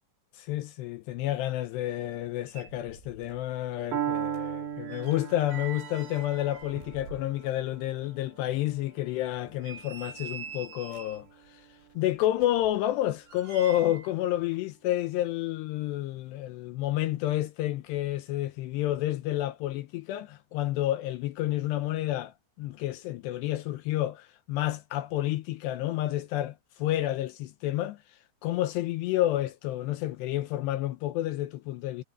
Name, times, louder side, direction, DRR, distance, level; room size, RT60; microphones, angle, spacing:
voice 1, 0.3-11.6 12.0-28.0 28.4-32.0, left 14 dB, 80° left, 2.6 m, -30 dB
sound 1, 2.2-2.3 2.5-3.5 3.7-7.7 8.0-8.1 8.7-8.8 9.3-11.3 12.1-14.1 14.4-14.6, right 7 dB, 80° right, 8.5 m, -45 dB
Piano, 3.9-11.8, right 10 dB, 45° right, 2.9 m, -38 dB
omnidirectional pair, 5.6 m